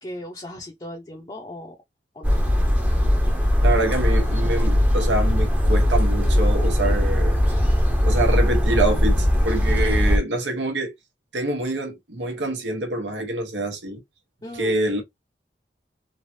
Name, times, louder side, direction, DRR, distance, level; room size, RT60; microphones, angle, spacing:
voice 1, 0.0-1.7 2.2-2.4 14.4-14.7, left 1 dB, 25° left, 0.6 m, -37 dB
sound 1, 2.2-10.2, equal, 10° right, 0.7 m, -19 dB
voice 2, 3.6-7.4 8.0-10.9 11.3-14.0 14.5-15.0, right 2 dB, 90° right, 1.1 m, -26 dB
3.3 x 2.3 x 2.7 m
head